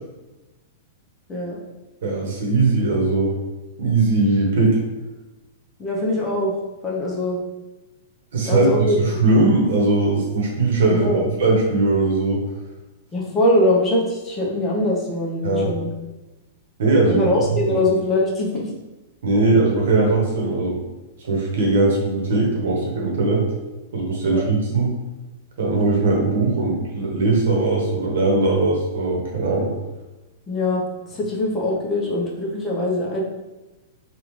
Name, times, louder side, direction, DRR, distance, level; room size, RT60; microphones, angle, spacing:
voice 1, 2.0-3.4 3.8-4.8 8.3-12.4 15.4-15.7 16.8-17.2 17.6-17.8 19.2-20.8 21.2-23.5 23.9-24.9 25.6-29.7, right 3 dB, 75° right, -1 dB, 1.0 m, -19 dB
voice 2, 5.8-6.6 6.8-7.4 8.5-9.0 10.9-11.3 13.1-15.9 17.1-18.7 24.2-24.5 30.5-30.8 31.1-33.2, left 1 dB, 20° left, -3 dB, 0.7 m, -22 dB
3.6 x 2.4 x 3.1 m, 1.1 s
hypercardioid pair, 145°, 0 cm